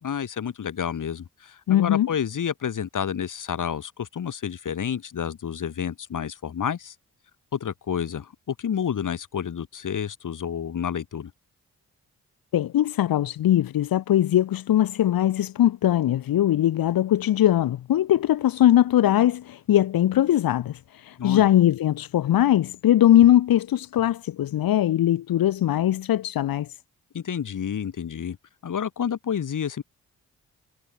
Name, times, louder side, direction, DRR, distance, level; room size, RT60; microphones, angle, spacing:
voice 1, 0.0-6.9 7.5-11.3 21.2-21.5 27.1-28.4 28.6-29.8, left 8 dB, 60° left, 1.9 m, -30 dB
voice 2, 1.7-2.1 12.5-26.7, left 12 dB, 75° left, 1.1 m, -21 dB
supercardioid pair, 50°, 35 cm